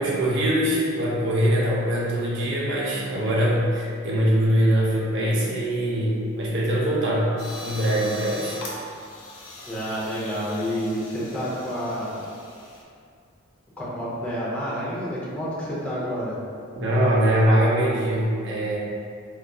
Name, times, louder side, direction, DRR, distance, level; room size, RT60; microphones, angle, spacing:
voice 1, 0.0-7.3 7.6-8.6 16.7-18.8, right 1 dB, 55° right, -5 dB, 0.7 m, -22 dB
sound 1, 7.4-12.8, left 1 dB, 60° left, 0.5 m, -40 dB
voice 2, 9.6-12.1 13.8-16.4, equal, 5° left, -9 dB, 0.6 m, -29 dB
3.9 x 2.3 x 2.3 m, 2.3 s
head